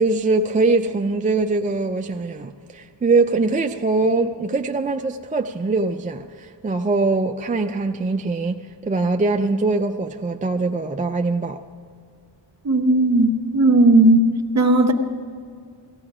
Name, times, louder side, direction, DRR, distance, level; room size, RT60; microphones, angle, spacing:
voice 1, 0.0-11.6, right 3 dB, 20° right, 0.3 m, -22 dB
voice 2, 12.6-14.3 14.5-14.9, right 1 dB, 35° right, 1.1 m, -15 dB
17.5 x 15.0 x 4.9 m
wide cardioid pair, 140°, 44 cm